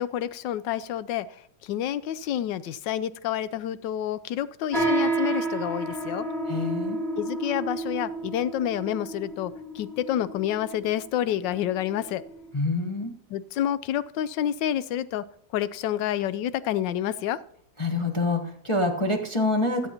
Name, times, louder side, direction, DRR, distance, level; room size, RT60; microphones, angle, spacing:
voice 1, 0.0-6.3 7.2-12.2 13.3-15.2 15.5-17.4, left 11 dB, 85° left, 16 dB, 1.3 m, -29 dB
sound 1, 4.7-12.5, right 2 dB, ahead, 2.0 m, -31 dB
voice 2, 6.5-7.0 12.5-13.1 17.8-19.9, left 2 dB, 20° left, 1 dB, 0.9 m, -26 dB
16.5 x 11.0 x 2.9 m, 0.64 s
omnidirectional pair, 1.9 m